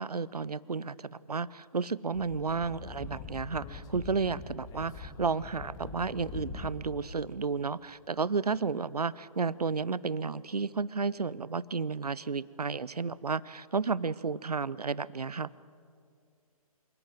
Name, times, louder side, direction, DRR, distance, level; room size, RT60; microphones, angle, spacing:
voice 1, 0.0-15.6, right 4 dB, 85° right, 20 dB, 0.8 m, -32 dB
Speech / Wind, 2.1-7.0, left 4 dB, 20° left, 1.8 m, -43 dB
27.0 x 18.0 x 9.1 m, 2.3 s
figure-of-eight pair, 135°, 19 cm